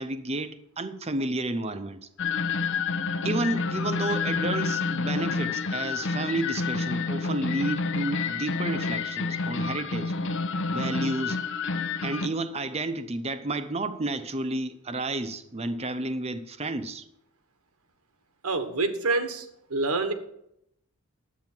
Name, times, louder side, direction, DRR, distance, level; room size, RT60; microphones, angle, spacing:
voice 1, 0.0-2.0 3.2-10.1 10.7-11.4 12.0-17.1, right 2 dB, 30° right, 10 dB, 0.7 m, -31 dB
sound 1, 2.2-12.3, left 4 dB, 55° left, 0.7 m, -29 dB
voice 2, 18.4-19.4 19.7-20.1, right 3 dB, 75° right, 8 dB, 1.3 m, -26 dB
10.5 x 8.5 x 6.0 m, 0.77 s
head